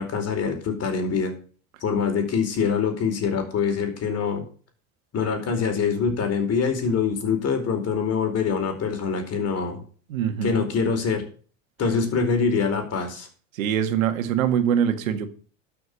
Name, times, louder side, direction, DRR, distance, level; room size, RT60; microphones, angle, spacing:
voice 1, 0.0-1.3 1.8-4.4 5.1-9.8 10.4-11.2 11.8-13.3, left 5 dB, 40° left, 4.6 m, -24 dB
voice 2, 10.1-10.6 13.5-15.3, right 9 dB, 80° right, 1.9 m, -23 dB
12.5 x 6.8 x 6.5 m
hypercardioid pair, 90°, 40 cm